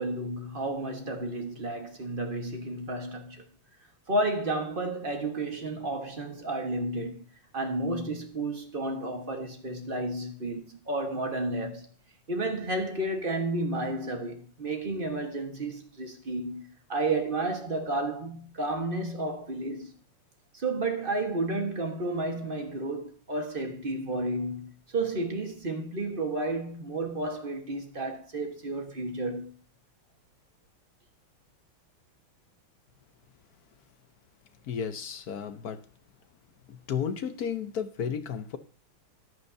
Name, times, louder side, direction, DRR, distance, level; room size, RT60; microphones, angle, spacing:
voice 1, 0.0-3.4 4.1-7.2 7.5-11.9 12.3-16.6 16.9-19.9 20.5-29.5, right 2 dB, 30° right, 1.3 m, -32 dB
voice 2, 34.7-35.8 36.7-38.6, left 7 dB, 55° left, 1.1 m, -33 dB
14.0 x 10.5 x 2.7 m
omnidirectional pair, 2.3 m